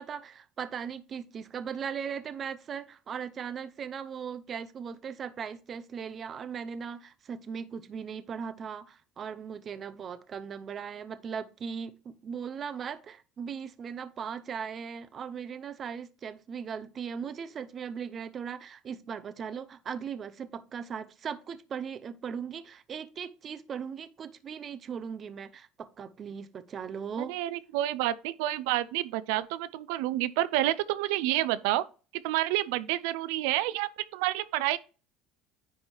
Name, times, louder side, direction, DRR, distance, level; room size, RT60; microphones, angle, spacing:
voice 1, 0.0-27.3, right 7 dB, 30° right, 0.6 m, -38 dB
voice 2, 27.2-31.8 32.1-34.8, right 15 dB, 85° right, 0.4 m, -29 dB
9.9 x 3.4 x 4.4 m
cardioid pair, 140°, 0 cm